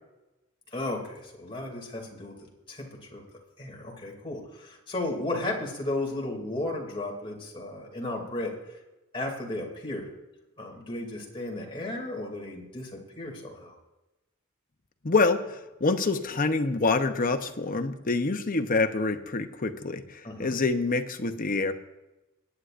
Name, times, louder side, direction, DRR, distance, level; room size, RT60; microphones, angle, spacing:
voice 1, 0.7-2.3 2.7-3.2 3.6-8.8 9.1-10.1 10.6-13.8 20.2-20.6, left 2 dB, 25° left, 0 dB, 2.6 m, -34 dB
voice 2, 15.0-21.7, left 3 dB, 40° left, 7 dB, 0.8 m, -26 dB
19.5 x 9.8 x 2.5 m, 1.0 s
head